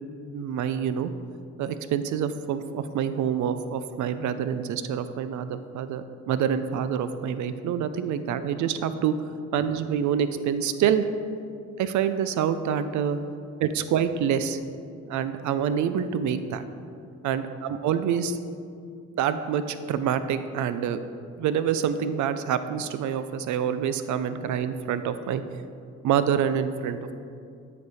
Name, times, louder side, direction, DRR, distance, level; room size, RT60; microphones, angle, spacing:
voice 1, 0.3-1.1 1.6-9.1 9.5-11.0 11.8-13.2 13.6-14.6 15.0-16.6 17.2-18.4 19.2-21.0 21.4-25.6 26.0-27.1, right 8 dB, 75° right, 11 dB, 0.5 m, -26 dB
8.3 x 5.2 x 4.2 m, 2.4 s
cardioid pair, 90°, 30 cm